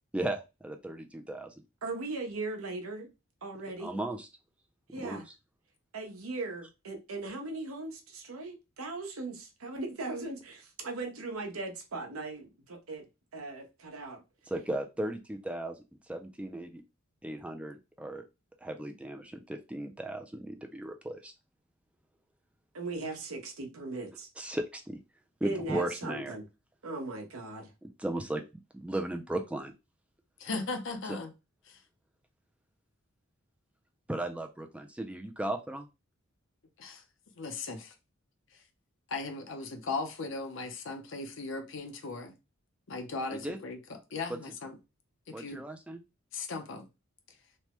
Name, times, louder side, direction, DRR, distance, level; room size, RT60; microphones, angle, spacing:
voice 1, 0.1-1.5 3.8-4.3 4.9-5.2 14.5-15.8 16.1-16.8 17.2-18.2 18.6-21.3 24.4-25.0 25.4-26.4 27.8-28.4 28.7-29.7 31.1-31.2 34.1-35.9 43.3-43.6 45.3-46.0, right 1 dB, 5° right, 0.3 m, -36 dB
voice 2, 1.8-3.1 3.4-3.9 4.9-5.2 5.9-13.0 13.3-14.2 22.7-24.3 25.4-26.4 26.8-27.7, right 3 dB, 85° right, 0.8 m, -38 dB
voice 3, 30.4-31.3 31.7-31.8 36.8-37.0 37.4-37.9 39.1-42.3 42.9-43.8 44.1-44.8 45.3-45.6 46.3-46.9, left 3 dB, 60° left, 0.6 m, -37 dB
3.2 x 2.2 x 2.9 m
head